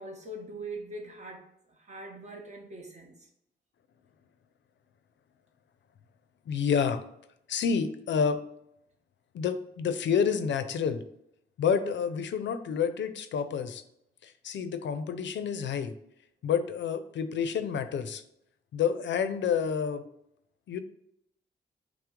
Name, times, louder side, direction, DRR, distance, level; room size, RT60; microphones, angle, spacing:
voice 1, 0.0-3.3, right 2 dB, 40° right, 1 dB, 0.9 m, -42 dB
voice 2, 6.5-7.0 7.5-8.4 9.3-11.0 11.6-13.8 14.2-15.9 16.4-18.2 18.7-20.0 20.7-20.8, left 7 dB, 85° left, 10 dB, 0.4 m, -29 dB
5.7 x 2.0 x 3.6 m, 0.75 s
wide cardioid pair, 140°, 18 cm